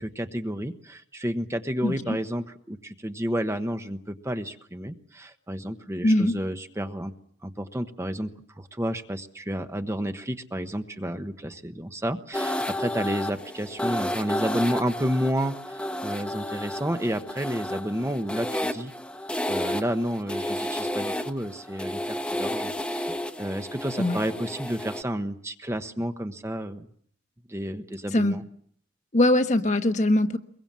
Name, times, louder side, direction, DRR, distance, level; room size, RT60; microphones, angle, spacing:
voice 1, 0.0-7.1 7.4-8.3 8.5-18.9 19.5-26.9 27.5-28.4, equal, 15° right, 8 dB, 1.0 m, -31 dB
voice 2, 1.8-2.2 6.0-6.3 24.0-24.2 28.1-28.4 29.1-30.4, left 1 dB, 40° left, 7 dB, 1.2 m, -22 dB
sound 1, 12.3-25.0, left 1 dB, 5° left, 1.0 m, -32 dB
24.5 x 22.0 x 7.4 m, 0.63 s
head